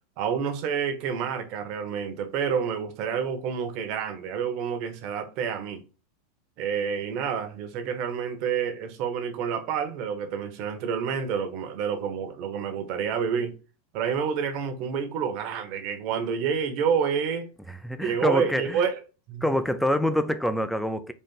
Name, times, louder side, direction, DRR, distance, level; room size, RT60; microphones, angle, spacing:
voice 1, 0.2-5.8 6.6-13.6 13.9-17.5 18.0-19.0 19.3-19.4, right 7 dB, 50° right, 1.0 m, -28 dB
voice 2, 17.7-18.8 19.4-21.1, equal, ahead, 0.4 m, -26 dB
4.1 x 2.4 x 3.8 m
supercardioid pair, 130°, 0 cm